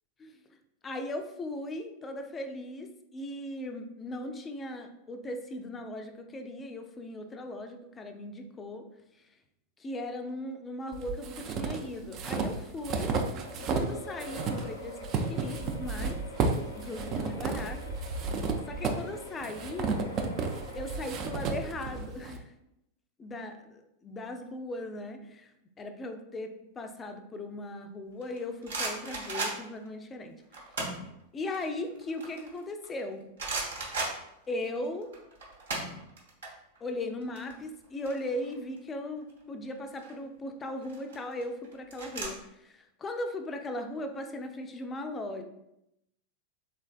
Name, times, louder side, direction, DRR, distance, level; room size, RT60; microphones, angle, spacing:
voice 1, 0.8-8.8 9.2-9.3 9.8-13.1 13.7-16.2 16.7-17.9 18.7-20.0 20.7-22.5 23.2-23.5 24.0-25.5 25.8-30.4 31.3-33.3 34.5-35.1 36.8-45.4, left 1 dB, 20° left, 6 dB, 0.4 m, -38 dB
sound 1, 10.9-13.9 14.2-22.4, right 4 dB, 35° right, 0.4 m, -32 dB
sound 2, 13.4-22.2, left 2 dB, 70° left, 0.6 m, -46 dB
sound 3, 28.2-29.9 30.5-31.1 31.5-33.0 33.4-34.8 35.0-36.5 36.7-36.9 37.2-38.8 39.7-40.1 40.8-42.3, right 3 dB, 65° right, 1.0 m, -36 dB
3.9 x 3.2 x 2.3 m, 0.83 s
figure-of-eight pair, 90°, 0 cm